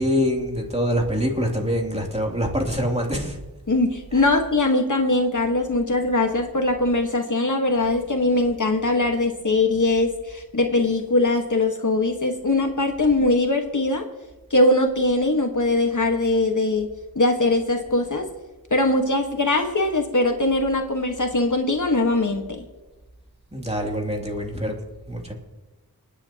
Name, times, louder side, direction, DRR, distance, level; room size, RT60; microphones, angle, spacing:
voice 1, 0.0-3.4 23.5-24.7 25.1-25.3, equal, 15° right, 0 dB, 2.8 m, -24 dB
voice 2, 3.7-14.0 14.5-16.9 17.1-18.3 18.7-22.6, left 2 dB, 50° left, 3 dB, 1.5 m, -21 dB
29.5 x 9.8 x 2.9 m, 1.1 s
wide cardioid pair, 45°, 38 cm